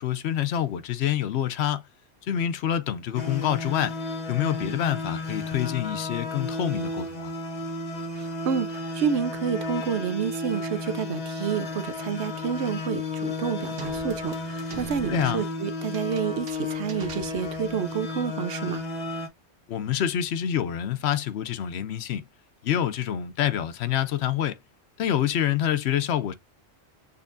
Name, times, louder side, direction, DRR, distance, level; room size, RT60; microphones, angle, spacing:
voice 1, 0.0-1.9 2.2-4.0 4.3-7.3 15.1-15.4 19.7-22.2 22.6-24.6 25.0-26.3, left 10 dB, 75° left, 0.9 m, -27 dB
sound 1, 3.1-19.3, left 2 dB, 40° left, 1.2 m, -33 dB
voice 2, 8.2-18.8, right 7 dB, 80° right, 1.0 m, -29 dB
sound 2, 13.8-17.9, right 4 dB, 60° right, 1.0 m, -44 dB
6.8 x 3.0 x 2.5 m
omnidirectional pair, 1.1 m